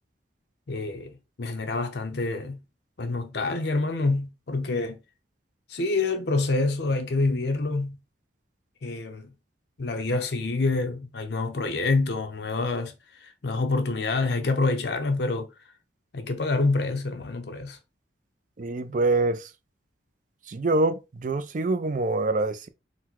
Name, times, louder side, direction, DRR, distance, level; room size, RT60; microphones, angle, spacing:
voice 1, 0.7-1.1 1.4-2.6 3.0-5.0 5.7-8.0 8.8-9.3 9.8-15.5 16.1-17.8, left 3 dB, 60° left, 0.6 m, -27 dB
voice 2, 18.6-19.5 20.5-22.7, right 2 dB, 45° right, 0.4 m, -25 dB
4.0 x 2.1 x 4.3 m
head